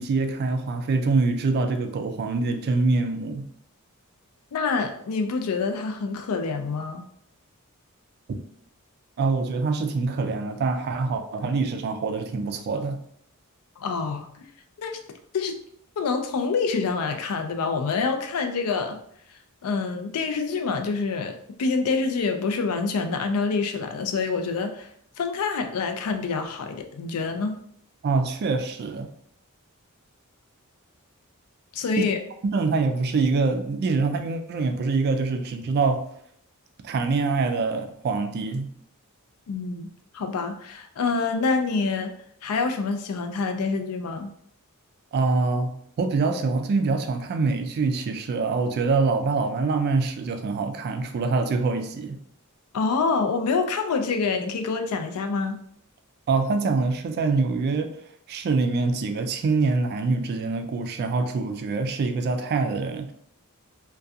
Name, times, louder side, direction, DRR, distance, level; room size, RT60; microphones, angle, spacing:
voice 1, 0.0-3.5 8.3-8.4 9.2-13.0 28.0-29.1 32.0-32.1 32.5-36.0 36.8-38.7 45.1-52.2 56.3-57.9 58.3-63.1, right 3 dB, 45° right, 7 dB, 0.3 m, -25 dB
voice 2, 4.5-7.0 13.8-14.3 14.8-15.0 15.3-15.5 16.0-19.0 19.6-24.9 25.2-27.5 31.7-32.2 39.5-39.9 40.1-42.1 42.4-44.3 52.7-55.6, left 4 dB, 80° left, 6 dB, 0.4 m, -26 dB
2.3 x 2.2 x 2.6 m, 0.66 s
head